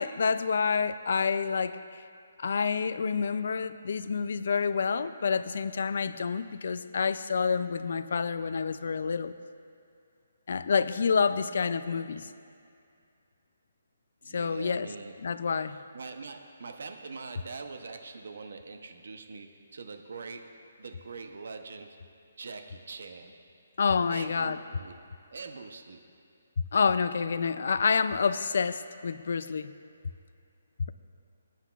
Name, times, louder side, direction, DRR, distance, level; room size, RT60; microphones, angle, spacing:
voice 1, 0.0-1.8 2.4-9.3 10.5-12.3 14.3-14.9 15.2-15.8 23.8-24.6 26.7-29.7, left 5 dB, 50° left, 13 dB, 0.3 m, -28 dB
voice 2, 14.2-15.1 15.7-20.5 20.8-22.0 22.4-23.3 24.1-25.0 25.3-26.0, right 4 dB, 55° right, 6 dB, 0.7 m, -43 dB
21.0 x 9.9 x 2.4 m, 2.4 s
hypercardioid pair, 175°, 0 cm